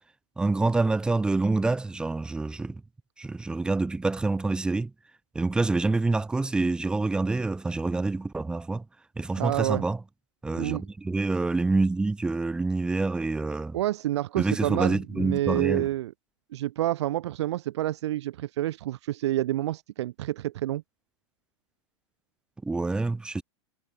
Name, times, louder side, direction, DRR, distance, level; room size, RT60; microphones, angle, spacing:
voice 1, 0.4-2.8 3.2-4.9 5.3-8.9 9.2-10.0 10.4-13.8 14.4-15.9 22.6-23.4, right 3 dB, 5° right, 0.3 m, -27 dB
voice 2, 9.4-9.8 10.5-10.8 13.7-16.1 16.5-20.8, right 14 dB, 65° right, 0.7 m, -28 dB
hypercardioid pair, 105°, 16 cm